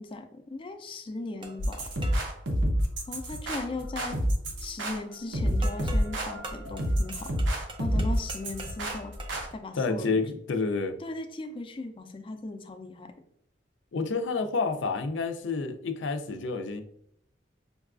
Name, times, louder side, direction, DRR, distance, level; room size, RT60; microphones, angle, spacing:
voice 1, 0.0-1.9 3.1-4.2 4.6-7.4 7.8-9.2 9.5-10.2 11.0-13.1, left 2 dB, 30° left, 6 dB, 0.4 m, -38 dB
sound 1, 1.4-2.3 5.6-9.6, right 2 dB, 30° right, 0.5 m, -44 dB
sound 2, 1.6-9.5, equal, 85° right, 0.8 m, -28 dB
voice 2, 9.8-11.0 13.9-16.8, left 4 dB, 90° left, 8 dB, 0.5 m, -29 dB
5.3 x 2.3 x 2.4 m, 0.71 s
head